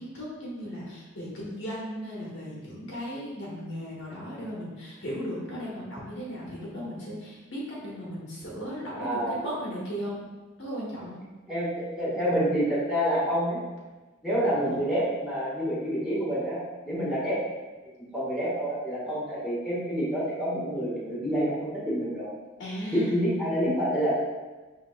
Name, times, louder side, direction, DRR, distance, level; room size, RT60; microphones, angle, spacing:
voice 1, 0.0-10.2 10.6-11.2 14.6-14.8 22.6-23.2, equal, 65° left, -5 dB, 1.2 m, -36 dB
voice 2, 9.0-9.4 11.5-13.6 14.2-17.4 18.1-22.3 22.9-24.1, equal, 5° right, -9 dB, 1.4 m, -28 dB
5.0 x 3.5 x 2.2 m, 1.2 s
head